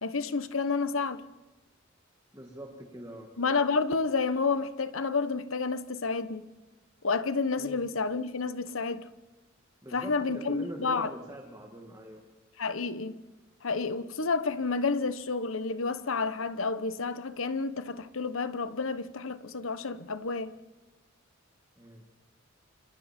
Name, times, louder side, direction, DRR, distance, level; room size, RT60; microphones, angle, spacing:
voice 1, 0.0-1.2 3.4-6.5 7.0-9.1 9.9-11.1 12.6-13.2 13.6-20.6, left 4 dB, 80° left, 1.1 m, -30 dB
voice 2, 2.3-3.3 7.6-7.8 9.8-12.3 21.8-22.0, right 1 dB, 15° right, 1.9 m, -43 dB
27.5 x 27.0 x 4.4 m
head